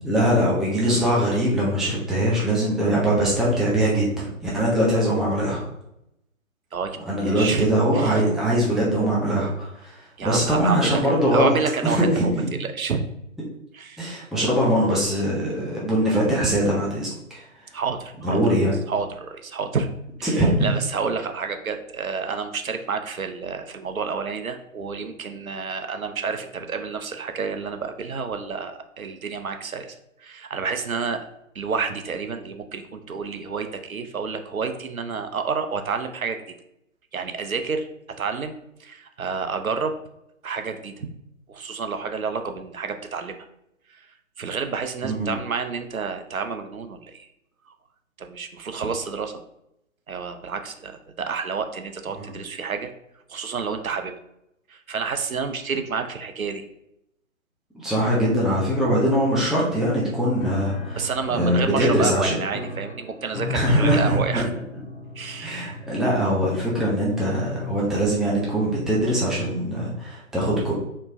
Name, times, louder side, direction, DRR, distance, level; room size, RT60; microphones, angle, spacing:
voice 1, 0.1-5.6 7.1-11.5 11.8-12.5 14.0-17.5 18.2-18.7 20.2-20.5 45.0-45.3 57.7-61.0 61.3-62.4 63.5-64.4 65.4-70.7, equal, ahead, -6 dB, 0.3 m, -22 dB
voice 2, 6.7-7.7 7.9-8.2 10.2-12.3 12.6-13.0 13.7-14.1 17.7-18.4 18.9-19.9 20.2-31.2 31.5-36.4 37.1-37.9 38.2-40.0 40.4-41.1 41.5-43.4 43.9-44.1 44.4-47.3 48.2-49.4 50.1-52.9 53.3-54.1 54.7-56.6 61.0-64.5 65.2-65.7, right 5 dB, 80° right, 7 dB, 0.7 m, -29 dB
Piano, 60.4-68.9, left 2 dB, 45° left, 0.6 m, -37 dB
4.4 x 3.0 x 2.6 m, 0.81 s
figure-of-eight pair, 140°, 41 cm